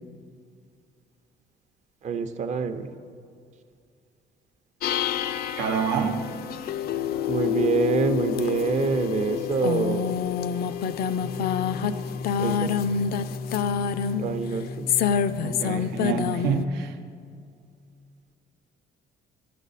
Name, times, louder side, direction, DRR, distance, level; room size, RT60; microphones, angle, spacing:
voice 1, 2.0-2.9 7.3-10.1 12.4-12.7 14.2-14.9, right 5 dB, 45° right, 9 dB, 0.6 m, -26 dB
sound 1, 4.8-16.7, left 7 dB, 65° left, 0.4 m, -27 dB
voice 2, 5.6-6.3 15.4-17.0, right 6 dB, 85° right, 7 dB, 0.8 m, -27 dB
13.0 x 7.7 x 4.1 m, 2.3 s
cardioid pair, 110°, 17 cm